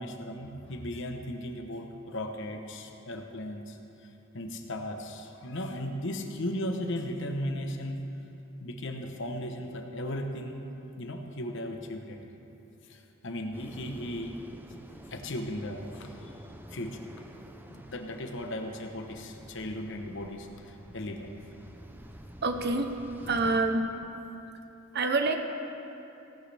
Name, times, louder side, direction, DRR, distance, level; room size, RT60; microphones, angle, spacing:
voice 1, 0.0-3.8 4.3-8.0 8.6-10.7 11.0-12.2 12.9-14.4 15.1-16.4 16.7-17.1 17.7-21.3, left 1 dB, 55° left, 4 dB, 1.0 m, -36 dB
sound 1, 13.5-23.6, right 1 dB, 10° right, 0.5 m, -49 dB
voice 2, 22.4-22.9 23.3-23.9 24.9-25.4, right 3 dB, 50° right, 6 dB, 0.8 m, -26 dB
17.5 x 11.5 x 3.4 m, 2.9 s
head